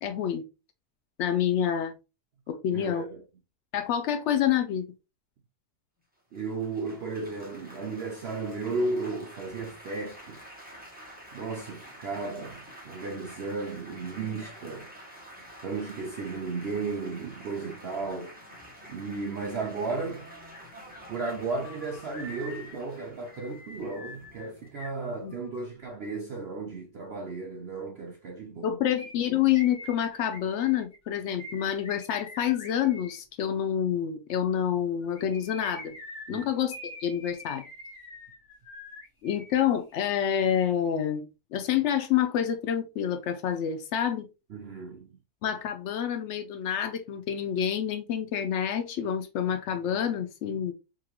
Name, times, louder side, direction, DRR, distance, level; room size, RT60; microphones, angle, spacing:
voice 1, 0.0-0.4 1.2-1.9 2.5-3.1 3.7-4.9 25.2-25.3 28.6-35.9 36.3-37.6 39.2-44.3 45.4-50.7, left 9 dB, 85° left, 0.6 m, -28 dB
voice 2, 2.7-3.2 6.3-10.4 11.3-14.9 15.6-18.4 18.9-20.3 21.1-28.8 36.3-36.5 44.5-45.1, right 3 dB, 75° right, 0.5 m, -34 dB
Laughter / Applause / Chatter, 6.3-25.5, right 1 dB, 5° right, 0.8 m, -49 dB
sound 1, 20.5-20.6 20.9-25.7 29.0-33.2 35.0-39.6 39.9-40.0, left 2 dB, 50° left, 1.4 m, -45 dB
3.7 x 3.0 x 2.8 m
omnidirectional pair, 1.7 m